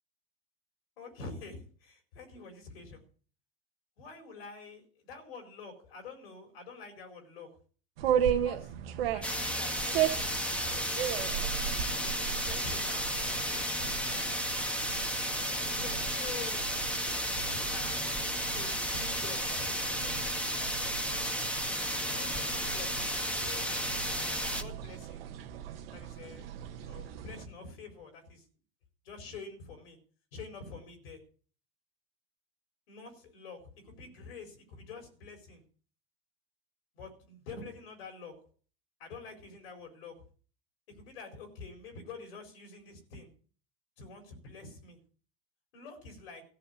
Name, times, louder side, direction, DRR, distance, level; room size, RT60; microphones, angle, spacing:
voice 1, 1.0-3.0 4.0-7.5 8.3-8.7 9.1-11.3 12.0-14.2 15.6-16.6 17.4-20.3 21.9-25.2 25.9-26.5 26.8-28.4 29.0-30.0 30.3-31.2 32.9-35.6 36.9-38.3 39.0-40.2 41.0-43.3 44.0-45.0 45.7-46.4, left 4 dB, 85° left, 4 dB, 4.4 m, -47 dB
sound 1, 8.0-27.5, right 10 dB, 80° right, 1.6 m, -36 dB
sound 2, 9.2-24.6, equal, 5° left, 1.7 m, -33 dB
14.0 x 6.0 x 9.3 m, 0.42 s
hypercardioid pair, 95°, 29 cm